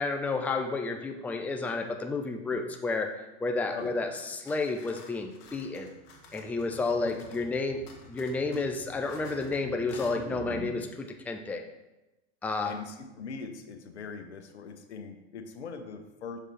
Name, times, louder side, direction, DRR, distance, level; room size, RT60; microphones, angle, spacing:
voice 1, 0.0-3.1 3.4-5.9 6.3-7.8 8.1-11.6 12.4-12.7, left 3 dB, 5° left, 4 dB, 0.5 m, -31 dB
voice 2, 3.7-4.2 7.0-7.5 10.1-10.2 12.6-16.4, left 5 dB, 80° left, 7 dB, 0.9 m, -41 dB
sound 1, 4.2-7.5 7.9-9.6 9.9-10.2, left 4 dB, 45° left, 1.5 m, -53 dB
sound 2, 5.4-10.7, right 2 dB, 50° right, 2.3 m, -47 dB
6.2 x 5.1 x 4.4 m, 1.0 s
hypercardioid pair, 95°, 33 cm